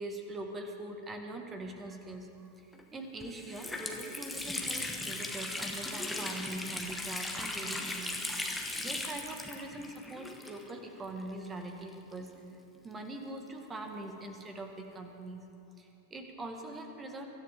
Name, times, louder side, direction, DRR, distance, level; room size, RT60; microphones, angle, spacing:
voice 1, 0.0-2.7 2.9-8.5 8.8-12.3 12.8-15.5 15.8-17.3, right 2 dB, 20° right, 4 dB, 1.8 m, -43 dB
Water tap faucet, 2.7-2.8 3.2-10.9 11.2-11.3 12.1-13.7, left 2 dB, 5° left, 1.5 m, -38 dB
24.5 x 13.0 x 3.7 m, 2.7 s
figure-of-eight pair, 90°, 0 cm